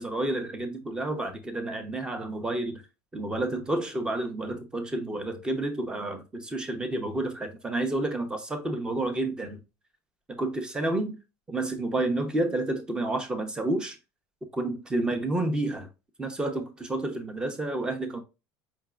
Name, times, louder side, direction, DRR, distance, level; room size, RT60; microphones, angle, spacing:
voice 1, 0.0-2.8 3.1-9.6 10.3-11.2 11.5-14.0 14.5-15.9 16.2-18.2, right 2 dB, 10° right, 0.7 m, -30 dB
4.9 x 3.5 x 2.3 m
cardioid pair, 155°, 8 cm